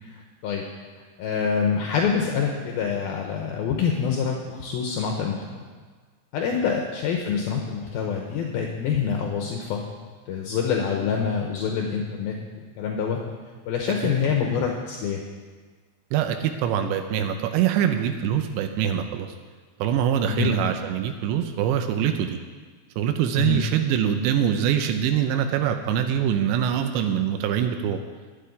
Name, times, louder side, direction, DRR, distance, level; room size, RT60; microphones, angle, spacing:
voice 1, 0.0-0.7 1.2-5.7 6.3-9.8 10.3-12.4 12.8-13.2 13.7-15.2 20.3-20.5 23.4-23.6, left 6 dB, 75° left, 2 dB, 2.5 m, -26 dB
voice 2, 16.1-19.3 19.8-22.4 23.0-28.0, right 9 dB, 85° right, 6 dB, 2.9 m, -24 dB
12.0 x 7.9 x 9.4 m, 1.5 s
omnidirectional pair, 5.1 m